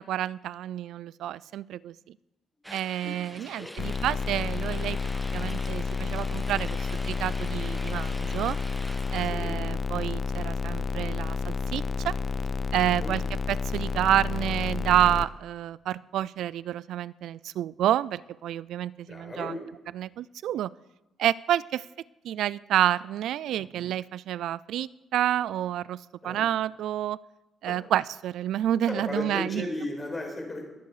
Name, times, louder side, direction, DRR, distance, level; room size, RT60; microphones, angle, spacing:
voice 1, 0.0-1.9 2.7-5.0 5.3-8.6 9.1-12.1 12.7-13.2 13.5-19.6 19.9-20.7 21.2-21.8 22.2-27.2 27.6-29.7, right 12 dB, 80° right, 21 dB, 0.4 m, -29 dB
sound 1, 2.6-9.2, equal, 5° right, 1.3 m, -44 dB
voice 2, 3.0-3.8 9.2-9.6 13.0-13.2 19.1-19.6 26.2-26.4 27.6-27.8 28.9-30.6, left 2 dB, 20° left, 1 dB, 5.4 m, -35 dB
sound 2, 3.8-15.2, left 5 dB, 45° left, 0.7 m, -30 dB
21.5 x 9.4 x 4.9 m, 1.0 s
cardioid pair, 90°, 0 cm